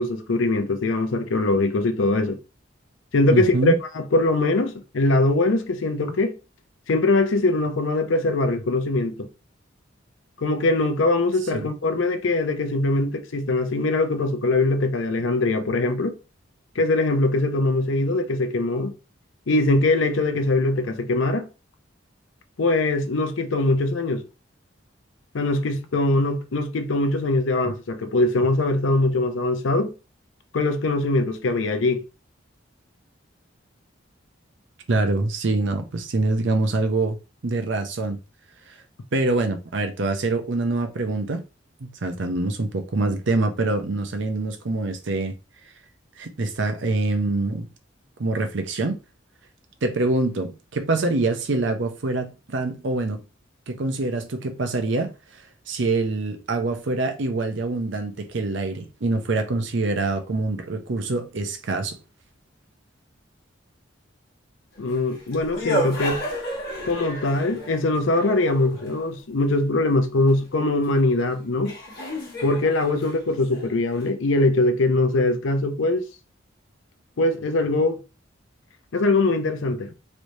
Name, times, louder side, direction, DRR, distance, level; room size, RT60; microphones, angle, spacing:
voice 1, 0.0-2.4 3.1-6.3 6.9-9.3 10.4-16.1 16.8-18.9 19.5-21.5 22.6-24.2 25.3-29.9 30.5-32.0 64.8-66.2 66.8-71.7 72.4-76.0 77.2-78.0 78.9-79.9, left 2 dB, 75° left, 0.6 m, -22 dB
voice 2, 3.3-3.8 11.5-11.7 34.9-37.2 37.4-38.2 38.7-38.8 39.1-41.4 41.8-45.3 46.2-47.7 48.2-49.0 49.8-53.2 53.7-55.1 55.7-62.0, right 2 dB, 65° right, 0.6 m, -25 dB
sound 1, 64.8-69.1 71.0-71.1 71.6-74.1, equal, 50° left, 1.1 m, -31 dB
3.1 x 3.1 x 2.7 m
head